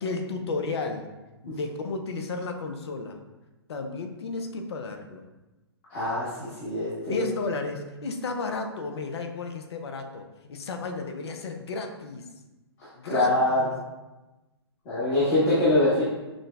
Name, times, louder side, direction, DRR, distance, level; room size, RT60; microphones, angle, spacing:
voice 1, 0.0-1.1 1.4-3.2 3.7-5.2 7.1-10.2 10.5-12.2 13.0-13.7, left 3 dB, 70° left, 5 dB, 0.5 m, -33 dB
voice 2, 5.9-7.3 13.0-13.7 14.8-16.0, left 1 dB, 40° left, -10 dB, 1.2 m, -24 dB
6.0 x 2.1 x 2.3 m, 1.1 s
hypercardioid pair, 125°, 14 cm